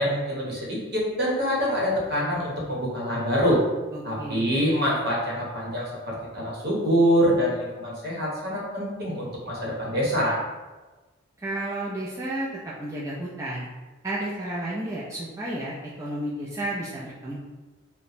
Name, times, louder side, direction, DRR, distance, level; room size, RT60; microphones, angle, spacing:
voice 1, 0.0-3.6 4.0-10.4, equal, 50° right, -4 dB, 0.9 m, -25 dB
voice 2, 3.9-4.5 11.4-13.7 14.0-17.4, right 1 dB, 15° right, -7 dB, 0.3 m, -32 dB
2.8 x 2.1 x 4.1 m, 1.2 s
head